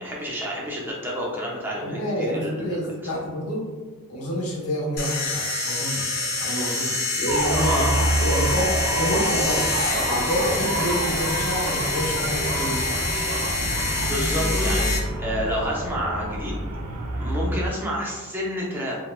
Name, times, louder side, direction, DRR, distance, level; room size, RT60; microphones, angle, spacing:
voice 1, 0.0-2.8 7.6-7.9 14.0-16.6 17.1-19.0, equal, 10° right, -4 dB, 0.5 m, -29 dB
voice 2, 1.8-3.7 4.1-13.1, equal, 80° left, -3 dB, 0.8 m, -28 dB
sound 1, 5.0-15.0, left 3 dB, 40° left, 0.5 m, -27 dB
sound 2, 7.3-17.7, right 1 dB, 85° right, 0.5 m, -27 dB
3.0 x 2.1 x 2.2 m, 1.3 s
head